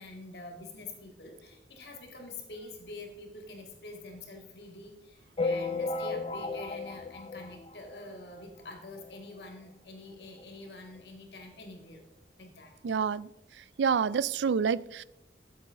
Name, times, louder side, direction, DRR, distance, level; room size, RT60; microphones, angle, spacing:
voice 1, 0.0-12.0 12.4-12.8, left 2 dB, 70° left, 3 dB, 2.1 m, -46 dB
sound 1, 5.4-8.2 8.7-8.8 9.0-9.1 9.4-9.5 10.4-10.5 10.9-11.0, left 3 dB, 30° left, 0.5 m, -34 dB
voice 2, 12.8-13.3 13.8-15.0, right 6 dB, 80° right, 19 dB, 0.4 m, -27 dB
13.5 x 8.0 x 3.7 m, 0.86 s
head